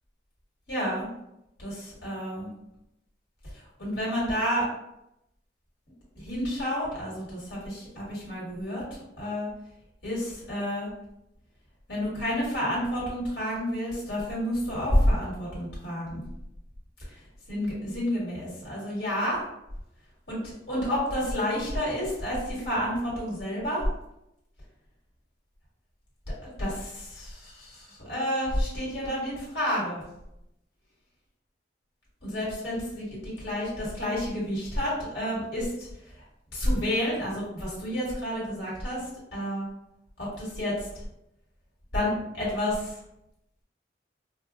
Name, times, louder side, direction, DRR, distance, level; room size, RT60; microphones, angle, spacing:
voice 1, 0.7-1.1 1.6-2.5 3.8-4.7 6.1-8.8 9.2-9.5 10.0-10.9 11.9-16.2 17.1-17.2 17.5-19.4 20.3-23.8 26.6-30.0 32.2-36.1 36.5-39.6 40.2-40.9 41.9-43.0, equal, 75° left, -6 dB, 1.4 m, -30 dB
4.3 x 2.2 x 2.4 m, 0.84 s
head